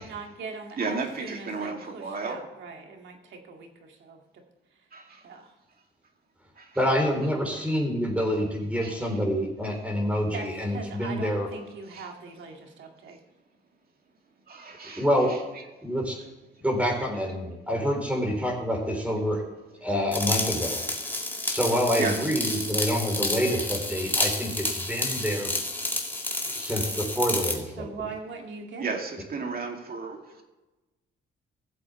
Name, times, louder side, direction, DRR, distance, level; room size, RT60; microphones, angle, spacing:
voice 1, 0.0-4.4 5.2-5.5 10.3-13.2 27.8-29.0, right 4 dB, 70° right, 3 dB, 2.1 m, -41 dB
voice 2, 0.8-2.4 4.9-5.3 6.6-6.8 7.5-7.6 8.8-9.2 11.9-12.1 14.5-15.4 22.0-22.2 26.0-26.1 26.6-26.8 28.8-30.4, right 4 dB, 50° right, 2 dB, 2.4 m, -34 dB
voice 3, 6.8-11.5 15.0-15.3 15.8-16.2 16.6-19.4 19.8-20.8 21.5-25.5 26.6-27.9, equal, 5° right, 1 dB, 3.5 m, -27 dB
sound 1, 20.1-27.6, left 2 dB, 10° left, 2.1 m, -30 dB
16.0 x 7.7 x 3.2 m, 1.1 s
cardioid pair, 90°, 20 cm